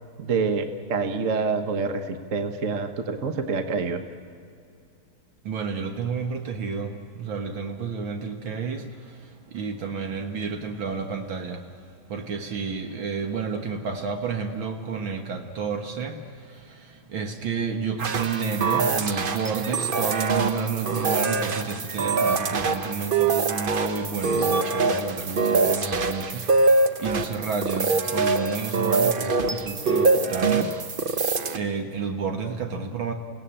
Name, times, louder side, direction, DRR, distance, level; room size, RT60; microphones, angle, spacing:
voice 1, 0.2-4.0, right 4 dB, 45° right, 8 dB, 1.2 m, -27 dB
voice 2, 5.4-30.8 31.5-33.1, right 5 dB, 65° right, 5 dB, 2.1 m, -31 dB
sound 1, 18.0-31.6, right 3 dB, 90° right, 0.4 m, -24 dB
29.0 x 17.5 x 8.8 m, 2.4 s
omnidirectional pair, 2.4 m